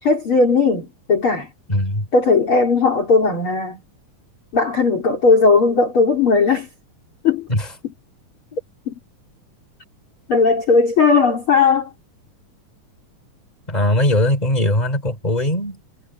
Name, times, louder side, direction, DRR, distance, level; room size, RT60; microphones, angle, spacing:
voice 1, 0.0-1.5 2.1-3.8 4.5-6.7 7.2-7.5 8.9-9.0 10.3-11.9, left 4 dB, 40° left, 4.3 m, -17 dB
voice 2, 1.7-2.1 7.5-7.7 8.5-8.6 13.7-15.8, left 1 dB, 10° left, 5.1 m, -20 dB
omnidirectional pair, 3.8 m